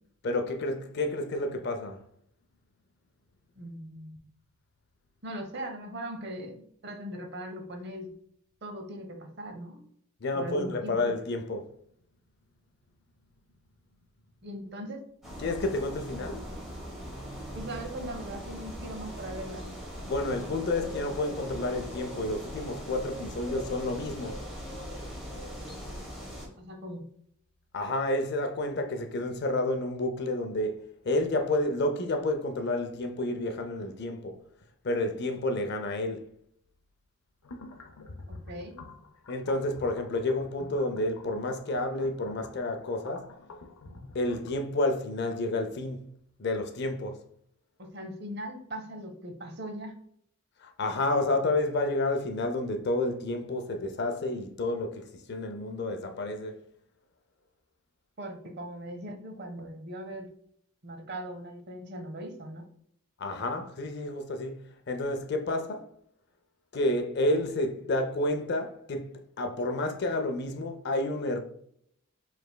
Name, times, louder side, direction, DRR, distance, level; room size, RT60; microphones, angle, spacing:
voice 1, 0.2-2.0 10.2-11.7 15.4-16.5 20.0-24.4 27.7-34.4 34.8-36.3 39.3-43.3 44.1-46.1 46.4-47.2 50.6-56.6 63.2-65.9 66.7-71.4, left 2 dB, 50° left, 0.5 m, -30 dB
voice 2, 3.5-4.2 5.2-8.1 8.6-9.8 10.3-11.0 14.4-15.0 17.5-19.7 26.6-27.1 38.3-38.8 47.8-50.0 58.2-60.3 60.8-62.7, right 1 dB, 50° right, 0.7 m, -39 dB
sound 1, 15.2-26.5, equal, ahead, 1.1 m, -40 dB
sound 2, 37.4-44.6, left 2 dB, 90° left, 0.7 m, -48 dB
4.9 x 3.4 x 2.2 m
head